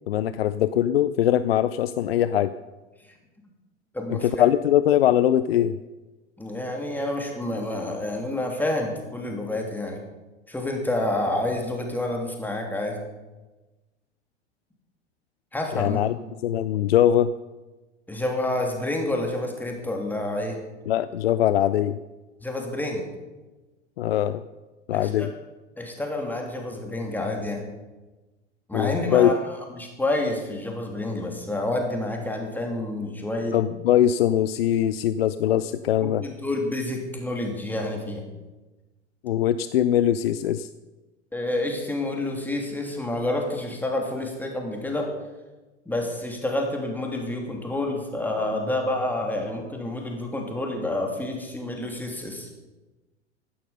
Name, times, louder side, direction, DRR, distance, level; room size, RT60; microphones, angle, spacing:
voice 1, 0.1-2.5 4.1-5.8 15.7-16.2 16.4-17.3 20.9-22.0 24.0-24.4 24.9-25.3 28.7-29.3 33.5-36.2 39.2-40.7, left 11 dB, 60° left, 14 dB, 0.6 m, -22 dB
voice 2, 3.9-4.3 6.4-10.0 10.5-13.0 15.5-16.0 18.1-20.6 22.4-23.0 24.9-25.3 25.8-27.6 28.7-29.4 29.7-33.6 36.0-38.2 41.3-45.1 45.8-52.5, left 1 dB, 5° left, 1 dB, 3.1 m, -28 dB
15.5 x 12.0 x 5.2 m, 1.2 s
figure-of-eight pair, 85°, 35 cm